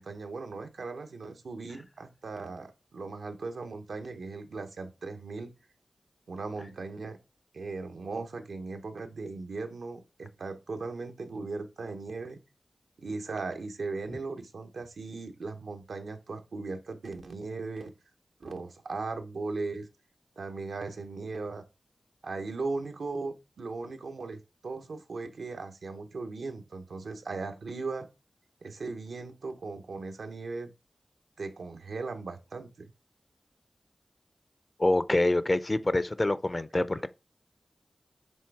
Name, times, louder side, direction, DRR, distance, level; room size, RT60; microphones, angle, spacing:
voice 1, 0.0-5.5 6.3-7.2 7.5-12.4 13.0-17.9 18.4-19.9 20.4-21.6 22.2-28.1 28.6-30.7 31.4-32.9 36.9-37.0, right 3 dB, 90° right, 0.9 m, -38 dB
voice 2, 34.8-37.1, left 2 dB, 35° left, 0.6 m, -26 dB
7.5 x 3.4 x 4.6 m
cardioid pair, 55°, 0 cm